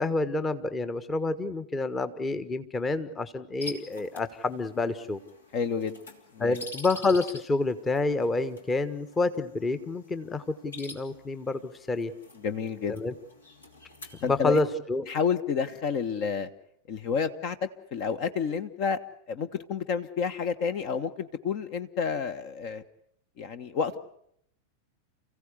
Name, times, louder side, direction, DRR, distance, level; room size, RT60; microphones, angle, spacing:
voice 1, 0.0-5.2 6.4-12.1 12.9-13.1 14.2-15.0, left 3 dB, 15° left, 13 dB, 1.3 m, -28 dB
sound 1, 3.6-14.6, left 2 dB, 70° left, 2.8 m, -47 dB
voice 2, 5.5-6.0 6.3-6.6 12.4-13.0 14.2-14.6 15.1-16.5 16.9-19.0 19.3-22.8 23.4-24.0, left 6 dB, 45° left, 12 dB, 1.3 m, -30 dB
30.0 x 16.0 x 8.3 m, 0.73 s
figure-of-eight pair, 90°, 0 cm